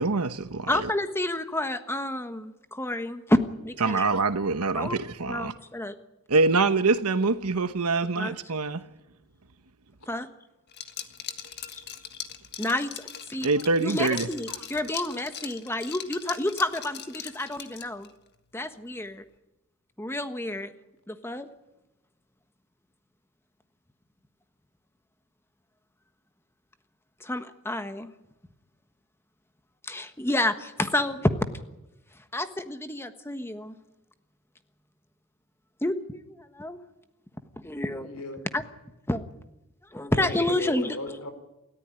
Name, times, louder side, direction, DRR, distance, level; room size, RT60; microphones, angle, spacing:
voice 1, 0.0-0.9 3.8-5.5 6.3-8.8 13.4-14.3, right 3 dB, 80° right, 1.1 m, -25 dB
voice 2, 0.7-3.4 3.6-4.0 4.7-5.0 5.3-5.9 8.2-8.3 10.1-10.3 11.7-11.8 12.6-13.5 13.8-18.1 18.5-19.2 20.0-20.7 21.1-21.5 27.2-28.1 29.8-31.3 32.3-33.7 35.8-35.9 36.3-36.8 37.6-38.1 38.5-38.6 39.1-39.2 39.9-41.2, left 1 dB, 10° left, 1.3 m, -29 dB
Liquid, 10.7-18.1, left 9 dB, 50° left, 1.6 m, -40 dB
voice 3, 38.0-38.4 40.1-41.3, left 3 dB, 80° left, 3.9 m, -36 dB
28.5 x 14.0 x 9.8 m
head